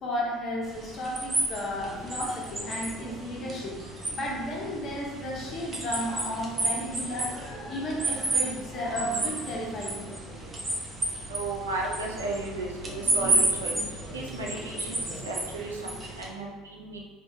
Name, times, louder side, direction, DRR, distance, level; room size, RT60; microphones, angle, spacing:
voice 1, 0.0-10.0, left 1 dB, 45° left, -2 dB, 0.7 m, -33 dB
sound 1, 0.6-16.3, right 2 dB, 25° right, 0.6 m, -32 dB
sound 2, 1.7-16.1, equal, 10° right, 1.0 m, -44 dB
voice 2, 11.3-13.7 14.1-17.0, right 2 dB, 90° right, -1 dB, 0.4 m, -34 dB
2.6 x 2.2 x 2.7 m, 1.3 s
hypercardioid pair, 65°, 0 cm